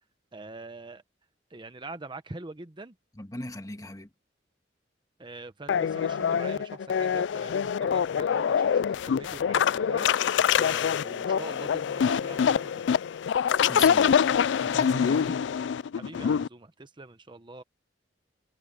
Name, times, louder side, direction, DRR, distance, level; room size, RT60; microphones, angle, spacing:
voice 1, 0.3-1.0 1.5-2.9 5.2-10.1 10.6-12.8 15.2-15.4 15.9-17.6, right 2 dB, 25° right, 0.9 m, -43 dB
voice 2, 3.1-4.1 13.7-14.1 14.6-15.4, left 2 dB, 20° left, 1.6 m, -37 dB
sound 1, 5.7-16.5, left 7 dB, 85° left, 0.3 m, -25 dB
head